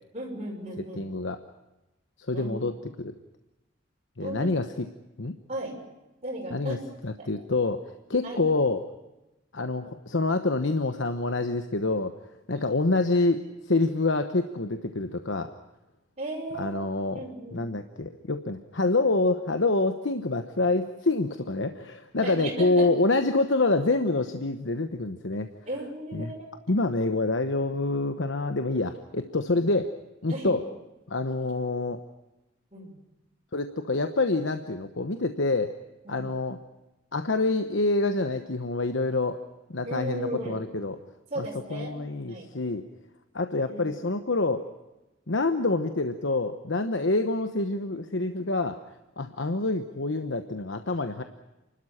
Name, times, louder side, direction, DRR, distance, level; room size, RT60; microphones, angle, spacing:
voice 1, 0.1-1.0 2.3-2.5 4.2-4.5 5.5-5.8 6.2-6.8 7.2-7.3 8.2-8.4 12.5-12.7 16.2-16.8 17.1-17.6 22.2-22.9 25.7-26.5 30.3-30.5 32.7-33.0 36.0-36.3 39.8-40.6 41.3-42.0 42.3-42.5 43.7-43.8, right 1 dB, 30° right, -3 dB, 6.4 m, -35 dB
voice 2, 0.9-1.4 2.2-2.7 3.0-3.1 4.2-4.9 5.2-5.3 6.5-6.8 7.0-8.8 9.5-12.1 12.5-15.5 16.6-17.2 17.5-25.5 26.1-26.3 26.7-30.0 30.2-30.6 31.1-32.0 33.5-35.7 36.1-36.6 37.1-39.4 39.7-41.0 41.4-42.8 43.3-44.7 45.3-48.8 49.2-51.2, left 2 dB, 70° left, 8 dB, 1.1 m, -27 dB
29.0 x 13.0 x 10.0 m, 1.0 s
head